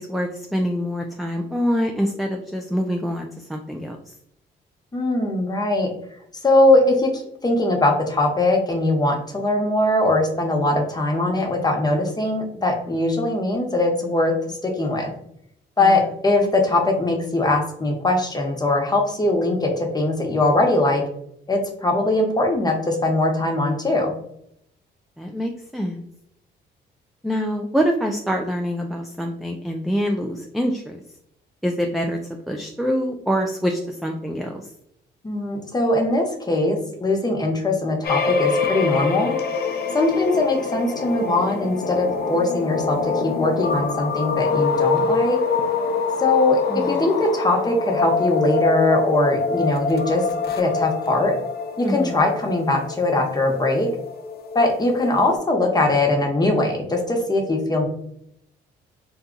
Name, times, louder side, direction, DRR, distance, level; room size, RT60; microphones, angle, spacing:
voice 1, 0.0-4.1 15.8-16.0 25.2-26.0 27.2-31.0 31.6-32.2 32.5-34.7 46.7-47.1 51.8-52.1, equal, ahead, 2 dB, 0.3 m, -25 dB
voice 2, 4.9-5.9 6.4-15.1 15.8-21.0 21.5-24.1 35.2-39.4 39.9-45.4 46.2-51.3 51.8-53.9 54.5-57.9, left 2 dB, 20° left, 2 dB, 0.9 m, -21 dB
sound 1, 38.0-55.4, left 4 dB, 50° left, 0.5 m, -25 dB
2.7 x 2.3 x 3.8 m, 0.73 s
cardioid pair, 90°, 20 cm